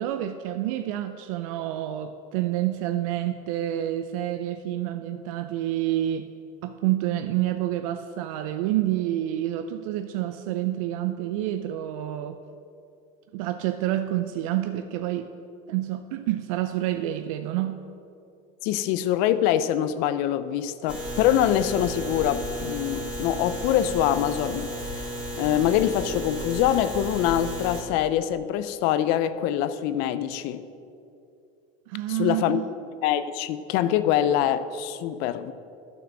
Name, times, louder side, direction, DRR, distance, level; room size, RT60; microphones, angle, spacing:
voice 1, 0.0-6.3 6.6-12.4 13.3-15.3 15.7-17.8 31.9-32.7, right 13 dB, 90° right, 8 dB, 0.5 m, -28 dB
voice 2, 18.6-30.6 32.1-32.7 33.0-35.5, left 11 dB, 65° left, 14 dB, 0.6 m, -24 dB
sound 1, 20.9-27.8, equal, 5° right, 1.9 m, -33 dB
10.5 x 6.2 x 7.3 m, 2.6 s
cardioid pair, 140°, 17 cm